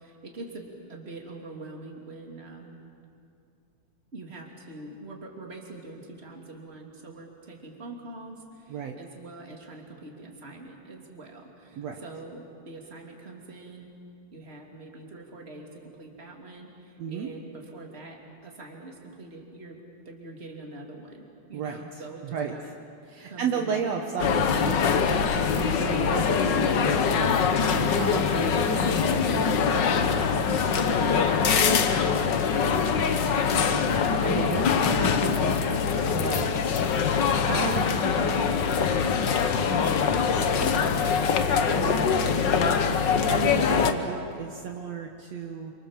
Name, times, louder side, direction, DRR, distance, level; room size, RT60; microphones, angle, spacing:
voice 1, 0.0-2.8 4.1-13.9 14.3-19.8 20.0-22.8 23.2-23.9 31.6-33.6 40.3-41.5, right 2 dB, 20° right, 1 dB, 3.0 m, -44 dB
voice 2, 17.0-17.3 21.5-22.6 23.1-30.7 33.7-36.7 37.5-38.8 41.7-45.7, right 6 dB, 65° right, 2 dB, 2.3 m, -34 dB
sound 1, 24.2-43.9, left 6 dB, 60° left, 1.2 m, -23 dB
28.5 x 26.0 x 7.5 m, 2.5 s
omnidirectional pair, 3.5 m